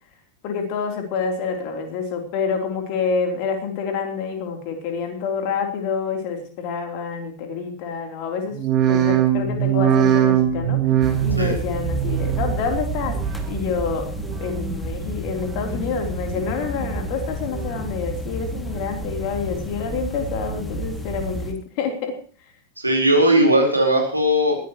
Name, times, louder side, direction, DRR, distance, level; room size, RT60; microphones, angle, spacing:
voice 1, 0.4-10.9 11.2-14.1 14.4-22.2, left 5 dB, 45° left, 3 dB, 3.7 m, -27 dB
sound 1, 8.5-13.8 14.1-14.7 15.2-15.9 16.3-17.0 17.4-18.1 18.5-19.1 19.6-19.7, right 10 dB, 30° right, 3.2 m, -23 dB
sound 2, 11.0-21.5, right 1 dB, 5° left, 2.5 m, -31 dB
voice 2, 22.8-24.6, right 1 dB, 85° right, 1 dB, 4.5 m, -18 dB
20.0 x 15.5 x 3.2 m, 0.40 s
figure-of-eight pair, 90°, 0 cm